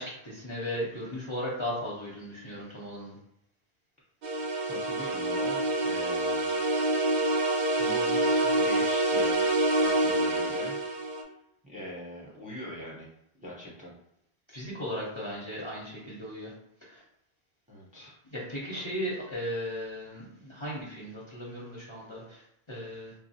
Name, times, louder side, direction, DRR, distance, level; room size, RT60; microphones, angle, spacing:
voice 1, 0.0-3.2 14.5-16.5 16.8-17.0 17.9-18.0 18.3-23.1, equal, 35° left, -5 dB, 0.6 m, -36 dB
sound 1, 4.2-11.2, right 2 dB, 55° right, 0.5 m, -26 dB
voice 2, 4.6-7.4 7.7-10.8 11.6-13.1 13.4-13.9 17.7-18.1 18.8-19.0, equal, 10° right, -4 dB, 0.5 m, -43 dB
3.4 x 2.0 x 2.6 m, 0.79 s
omnidirectional pair, 1.1 m